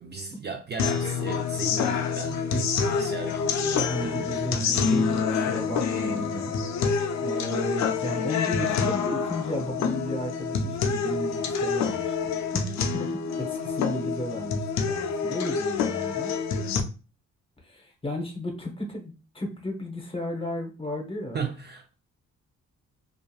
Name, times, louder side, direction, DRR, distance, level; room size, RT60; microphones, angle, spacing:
voice 1, 0.0-4.4 21.3-21.9, right 4 dB, 35° right, 0.4 m, -36 dB
sound 1, 0.8-16.8, left 6 dB, 65° left, 0.5 m, -27 dB
voice 2, 3.7-12.6 12.9-13.1 13.4-16.3 17.6-21.4, equal, 20° left, 0.8 m, -34 dB
2.8 x 2.4 x 2.3 m
cardioid pair, 90°, 30 cm